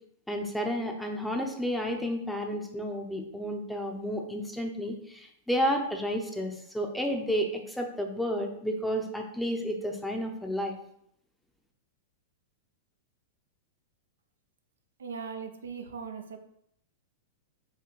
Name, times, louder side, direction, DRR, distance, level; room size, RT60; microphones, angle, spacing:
voice 1, 0.3-10.7, equal, 5° left, 3 dB, 0.7 m, -31 dB
voice 2, 15.0-16.4, right 6 dB, 80° right, 6 dB, 0.5 m, -39 dB
4.8 x 3.1 x 3.1 m, 0.71 s
hypercardioid pair, 100°, 0 cm